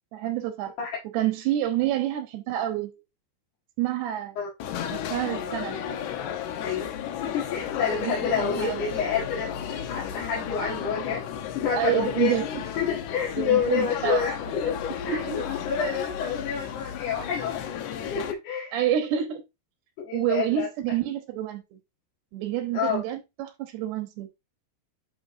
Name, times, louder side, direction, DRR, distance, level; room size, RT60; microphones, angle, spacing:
voice 1, 0.1-0.7 1.1-2.9 3.8-4.4 4.9-5.8 8.0-8.9 11.8-12.5 13.4-14.3 15.1-15.4 18.7-19.4 20.1-21.6 22.3-24.3, right 11 dB, 85° right, 3.1 m, -28 dB
sound 1, 4.6-18.3, left 9 dB, 80° left, 1.7 m, -33 dB
voice 2, 7.2-11.2 11.5-12.3 12.8-17.6 18.1-18.7 20.0-20.7 22.7-23.0, left 6 dB, 55° left, 3.0 m, -28 dB
10.0 x 4.4 x 2.7 m
omnidirectional pair, 4.6 m